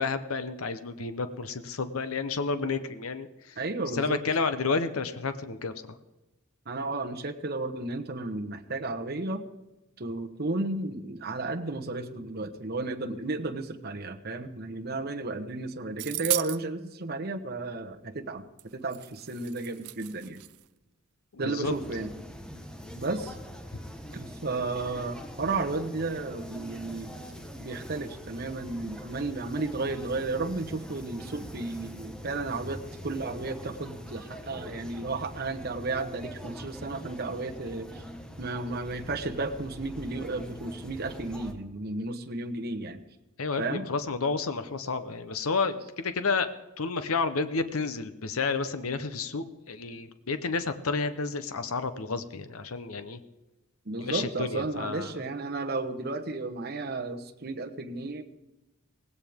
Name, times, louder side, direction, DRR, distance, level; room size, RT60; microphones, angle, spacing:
voice 1, 0.0-3.5 3.9-5.7 21.3-21.7 43.4-46.5 46.8-53.2 54.0-55.1, left 4 dB, 75° left, 11 dB, 0.8 m, -30 dB
voice 2, 3.6-4.2 6.7-9.4 10.0-20.4 21.4-22.1 23.0-23.4 24.1-27.2 27.6-37.9 38.4-43.0 43.6-43.9 53.8-58.2, right 3 dB, 45° right, 5 dB, 1.1 m, -33 dB
sound 1, 16.0-16.6 18.6-18.7 18.9-20.6, right 19 dB, 90° right, 0.4 m, -35 dB
sound 2, 21.6-41.5, equal, 5° left, 1.1 m, -43 dB
18.5 x 16.5 x 3.6 m, 1.0 s
head